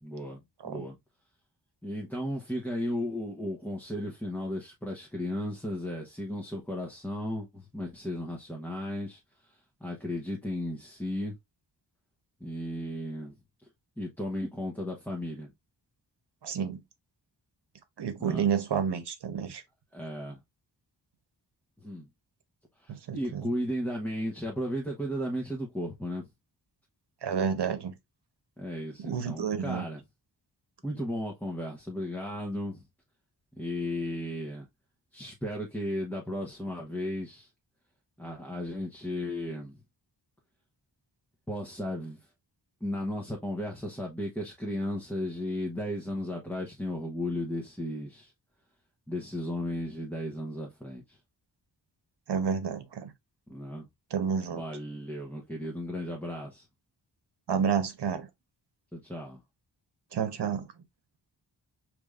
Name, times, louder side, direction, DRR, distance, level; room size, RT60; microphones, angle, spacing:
voice 1, 0.0-1.0 1.8-11.4 12.4-13.4 14.0-15.5 18.2-18.5 19.9-20.4 21.8-22.1 22.8-26.3 28.6-30.0 30.8-32.8 33.5-34.7 35.1-37.5 38.2-39.8 41.5-42.3 42.8-48.3 49.1-51.2 53.5-53.9 54.5-56.7 58.9-59.4, left 1 dB, 5° left, 0.8 m, -35 dB
voice 2, 16.4-16.8 18.0-19.6 22.9-23.5 27.2-27.9 29.0-29.9 52.3-53.1 54.1-54.6 57.5-58.3 60.1-60.7, right 7 dB, 70° right, 1.0 m, -30 dB
5.0 x 3.2 x 2.4 m
wide cardioid pair, 135°, 42 cm